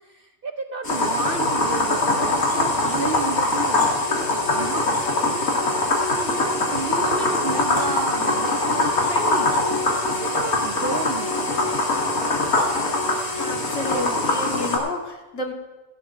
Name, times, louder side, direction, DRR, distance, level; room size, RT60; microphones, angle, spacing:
voice 1, 0.1-4.9 5.3-5.5 5.9-6.4 6.7-11.7, right 5 dB, 55° right, 6 dB, 0.6 m, -32 dB
sound 1, 0.8-14.8, left 2 dB, 85° left, 2.7 m, -23 dB
sound 2, 3.8-14.3, left 2 dB, 5° left, 0.4 m, -34 dB
voice 2, 13.3-15.5, left 2 dB, 60° left, 2 dB, 1.8 m, -30 dB
18.0 x 15.5 x 2.5 m, 1.1 s
omnidirectional pair, 1.5 m